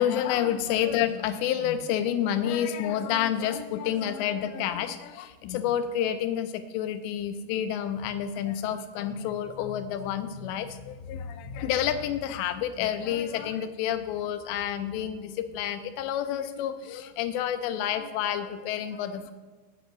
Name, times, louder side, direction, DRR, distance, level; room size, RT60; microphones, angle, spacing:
voice 1, 0.0-19.3, left 10 dB, 85° left, 9 dB, 2.7 m, -29 dB
9.5 x 5.9 x 7.9 m, 1.3 s
omnidirectional pair, 5.1 m